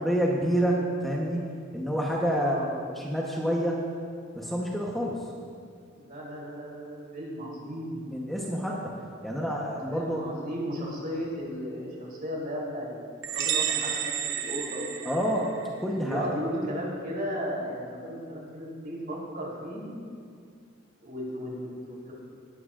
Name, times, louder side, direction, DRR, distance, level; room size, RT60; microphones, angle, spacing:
voice 1, 0.0-1.4 1.7-2.5 2.9-3.8 4.3-5.3 8.1-8.9 9.2-10.2 15.0-15.5 15.8-16.4, equal, ahead, -3 dB, 1.0 m, -28 dB
voice 2, 2.4-2.7 6.0-8.1 9.7-15.3 15.9-19.8 21.0-22.1, equal, 50° right, -4 dB, 3.6 m, -35 dB
sound 1, 13.2-15.8, right 9 dB, 65° right, 0.8 m, -31 dB
18.5 x 12.5 x 2.5 m, 2.2 s
head